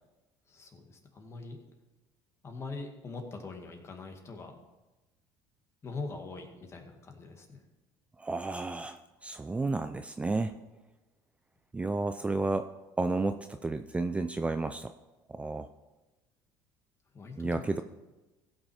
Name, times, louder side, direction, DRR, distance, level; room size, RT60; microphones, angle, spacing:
voice 1, 0.5-1.6 2.4-4.6 5.8-7.6 17.1-17.8, left 3 dB, 30° left, 3 dB, 2.1 m, -42 dB
voice 2, 8.2-10.5 11.7-12.7 13.0-14.9 15.3-15.7 17.4-17.8, right 3 dB, 15° right, 8 dB, 0.5 m, -32 dB
16.0 x 6.2 x 4.9 m, 1.1 s
supercardioid pair, 100°, 9 cm